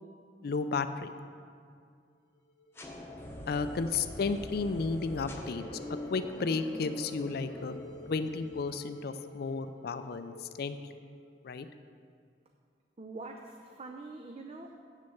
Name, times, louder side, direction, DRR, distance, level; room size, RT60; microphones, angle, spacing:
voice 1, 0.4-1.1 3.5-5.6 5.9-7.8 8.1-10.8 11.4-11.7, left 4 dB, 60° left, 10 dB, 0.4 m, -33 dB
sound 1, 2.4-11.6, left 1 dB, 90° left, 1.0 m, -51 dB
sound 2, 2.7-8.7, left 1 dB, 15° left, 0.9 m, -44 dB
voice 2, 13.0-14.8, right 3 dB, 35° right, 2 dB, 0.5 m, -44 dB
8.3 x 6.5 x 7.0 m, 2.3 s
head